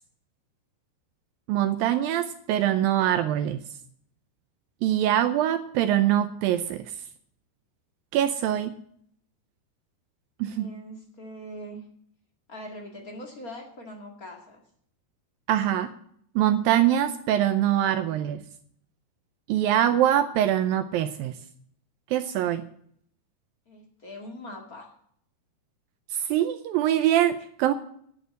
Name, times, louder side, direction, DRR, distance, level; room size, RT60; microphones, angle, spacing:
voice 1, 1.5-3.6 4.8-6.8 8.1-8.8 10.4-10.7 15.5-15.9 16.4-18.4 19.5-21.3 22.1-22.6 26.1-27.7, right 11 dB, 85° right, 10 dB, 2.1 m, -23 dB
voice 2, 10.4-11.9 12.5-14.6 23.6-24.9, equal, 40° left, 2 dB, 1.2 m, -42 dB
11.5 x 8.1 x 7.6 m, 0.64 s
omnidirectional pair, 4.8 m